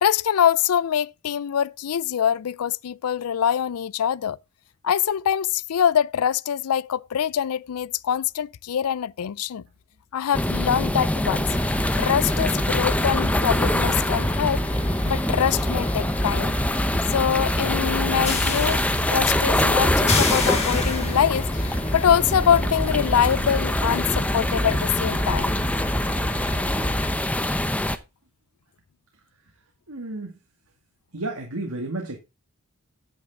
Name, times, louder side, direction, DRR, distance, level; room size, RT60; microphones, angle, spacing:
voice 1, 0.0-4.4 4.8-9.6 10.1-11.5 12.0-14.6 15.1-16.6 17.1-25.6, left 9 dB, 80° left, 0.4 m, -24 dB
sound 1, 10.3-28.0, left 1 dB, 5° left, 0.7 m, -25 dB
sound 2, 11.4-27.1, left 1 dB, 30° left, 2.3 m, -28 dB
voice 2, 29.9-30.3 31.1-32.2, right 2 dB, 75° right, 2.3 m, -31 dB
10.0 x 8.5 x 3.7 m
head